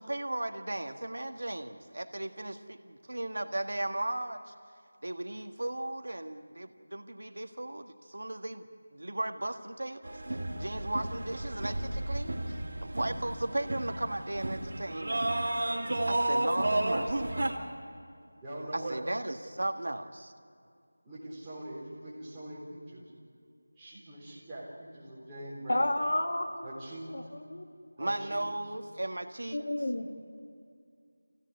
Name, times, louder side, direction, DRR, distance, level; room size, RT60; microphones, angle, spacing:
voice 1, 0.0-4.5 5.0-8.7 8.9-15.3 16.0-17.3 18.7-20.3 28.0-29.6, right 1 dB, 70° right, 7 dB, 1.6 m, -36 dB
sound 1, 10.0-17.5, right 1 dB, 50° right, 3.0 m, -32 dB
voice 2, 18.4-19.0 21.0-23.0 23.8-25.9 26.6-27.1 28.0-28.4, right 1 dB, 5° right, -12 dB, 3.8 m, -42 dB
voice 3, 25.7-26.7 27.1-27.7 29.5-30.1, left 1 dB, 60° left, 4 dB, 2.2 m, -31 dB
25.5 x 16.5 x 9.6 m, 2.4 s
figure-of-eight pair, 180°, 0 cm